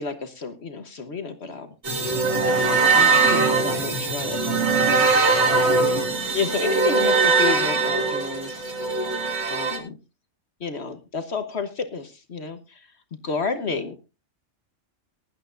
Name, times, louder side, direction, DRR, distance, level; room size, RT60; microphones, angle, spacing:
voice 1, 0.0-2.2 2.9-4.4 5.4-5.9 6.3-8.7 9.5-10.0 10.6-12.9 13.2-14.0, left 4 dB, 60° left, 9 dB, 1.4 m, -31 dB
sound 1, 1.8-9.8, right 4 dB, 60° right, 2.7 m, -21 dB
19.0 x 11.5 x 2.6 m, 0.28 s
omnidirectional pair, 1.3 m